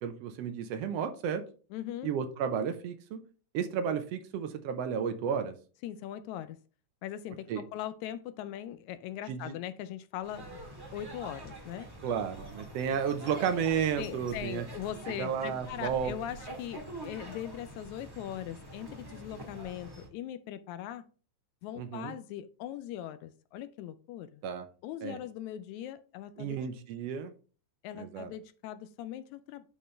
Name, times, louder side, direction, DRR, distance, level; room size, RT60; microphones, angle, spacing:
voice 1, 0.0-1.4 2.0-3.2 3.5-5.5 7.5-7.6 9.3-9.5 12.0-14.7 15.1-16.1 21.8-22.1 24.4-24.7 25.0-25.2 26.4-27.3 28.0-28.3, right 7 dB, 75° right, 1.5 m, -32 dB
voice 2, 1.7-2.1 5.8-6.6 7.0-10.6 10.9-11.9 14.0-21.1 21.6-24.4 24.8-26.6 27.8-29.7, left 11 dB, 80° left, 1.7 m, -40 dB
sound 1, 10.2-20.1, right 1 dB, 10° right, 1.1 m, -45 dB
10.0 x 4.3 x 3.3 m
omnidirectional pair, 3.6 m